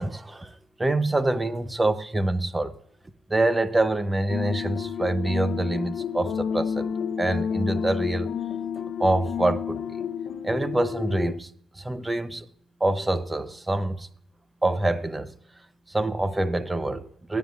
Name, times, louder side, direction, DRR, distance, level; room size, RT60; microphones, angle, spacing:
voice 1, 0.0-2.7 3.3-6.9 7.2-8.3 9.0-10.0 10.4-12.5 12.8-14.1 14.6-15.3 15.9-17.4, right 2 dB, 15° right, 0.9 m, -26 dB
sound 1, 4.3-11.3, left 7 dB, 65° left, 0.8 m, -30 dB
22.5 x 9.4 x 2.6 m
cardioid pair, 90°, 0 cm